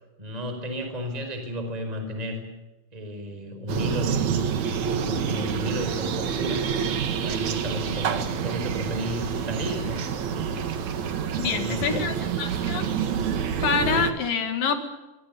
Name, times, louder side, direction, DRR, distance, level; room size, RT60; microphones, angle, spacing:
voice 1, 0.2-2.4 2.9-4.5 4.8-6.6 7.1-10.6 11.4-12.2, equal, 10° right, 5 dB, 4.3 m, -33 dB
sound 1, 3.7-14.1, right 7 dB, 55° right, 2.1 m, -27 dB
voice 2, 11.4-12.9 13.6-14.8, left 6 dB, 55° left, 7 dB, 3.1 m, -26 dB
24.5 x 23.0 x 6.9 m, 1.1 s
omnidirectional pair, 5.2 m